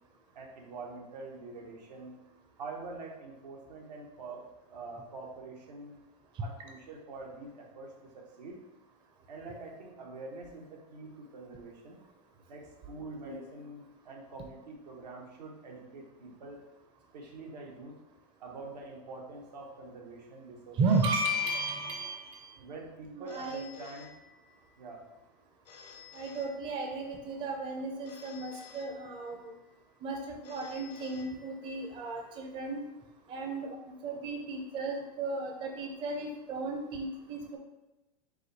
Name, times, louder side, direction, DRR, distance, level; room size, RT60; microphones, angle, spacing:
voice 1, 0.3-2.2 2.6-6.0 6.4-8.6 9.3-12.0 12.5-16.6 17.1-18.0 18.4-21.0 22.6-24.1 24.8-25.0, right 3 dB, 90° right, -1 dB, 1.2 m, -45 dB
voice 2, 20.8-22.4 23.1-23.7 26.1-29.5 30.0-32.8 33.3-33.8 34.0-37.6, right 2 dB, 25° right, 2 dB, 0.5 m, -34 dB
Telephone, 20.9-22.4 23.3-24.8 25.7-27.2 28.0-29.5 30.4-31.9, left 6 dB, 80° left, 0.9 m, -53 dB
4.9 x 2.3 x 4.0 m, 1.0 s
supercardioid pair, 145°, 21 cm